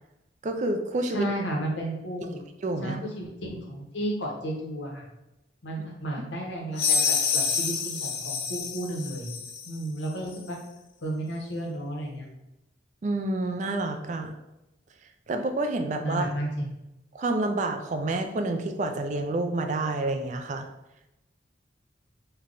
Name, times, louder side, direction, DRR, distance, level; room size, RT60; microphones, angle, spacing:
voice 1, 0.4-1.3 2.6-3.0 13.0-14.4 15.3-16.3 17.1-20.7, right 2 dB, 40° right, 6 dB, 0.3 m, -28 dB
voice 2, 1.1-2.4 2.8-5.0 5.6-9.3 9.7-10.6 11.0-12.3 16.0-16.7, right 1 dB, 80° left, -1 dB, 0.9 m, -33 dB
sound 1, 6.8-9.7, left 6 dB, 65° left, 0.4 m, -27 dB
3.3 x 2.2 x 3.7 m, 0.93 s
head